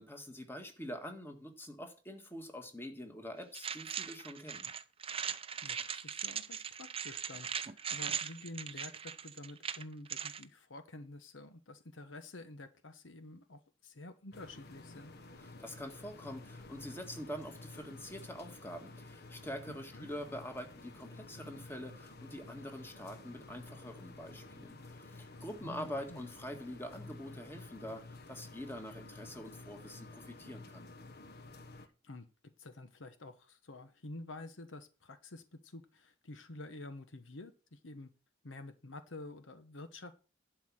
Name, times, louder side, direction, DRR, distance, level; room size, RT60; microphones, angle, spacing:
voice 1, 0.0-4.7 15.4-30.9, equal, 10° left, 1.7 m, -45 dB
sound 1, 3.5-10.4, right 7 dB, 30° right, 0.6 m, -40 dB
voice 2, 5.6-15.1 19.7-20.1 25.6-26.2 31.8-38.1 38.4-40.1, left 2 dB, 75° left, 1.1 m, -49 dB
sound 2, 14.3-31.9, left 2 dB, 60° left, 1.2 m, -52 dB
11.5 x 4.7 x 7.4 m
head